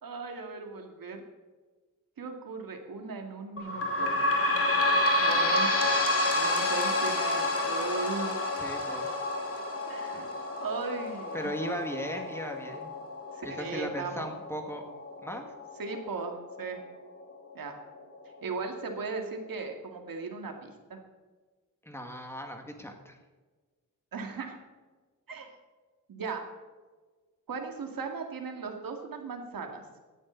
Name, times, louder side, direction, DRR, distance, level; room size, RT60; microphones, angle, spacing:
voice 1, 0.0-1.2 2.2-4.2 5.2-6.0 6.3-8.3 9.9-10.3 10.6-11.5 13.3-14.3 15.8-16.8 17.5-17.8 18.4-21.0 24.1-24.6 25.3-25.5 26.1-26.4 27.5-29.8, right 4 dB, 80° right, 3 dB, 2.4 m, -37 dB
sound 1, 3.6-16.7 17.3-17.4 17.7-17.8 18.6-18.7, left 2 dB, 40° left, 2.4 m, -29 dB
voice 2, 8.6-9.1 10.1-10.3 11.3-12.9 13.4-14.8 15.2-15.5 21.8-23.2, equal, 5° left, 3 dB, 2.0 m, -37 dB
17.0 x 11.5 x 4.1 m, 1.4 s
wide cardioid pair, 130°, 34 cm